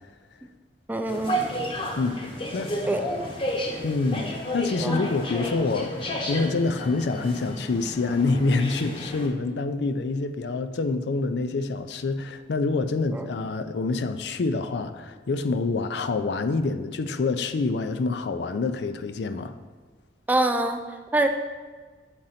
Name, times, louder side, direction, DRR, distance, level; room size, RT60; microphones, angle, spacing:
voice 1, 0.9-1.5 2.9-3.0 4.8-5.0 13.1-13.3 20.3-20.8 21.1-21.3, right 2 dB, 10° right, 5 dB, 0.4 m, -24 dB
sound 1, 1.1-9.3, equal, 30° left, 0.8 m, -32 dB
voice 2, 2.0-2.8 3.8-6.0 6.3-19.6, left 3 dB, 75° left, 10 dB, 0.4 m, -26 dB
7.6 x 3.8 x 5.7 m, 1.4 s
head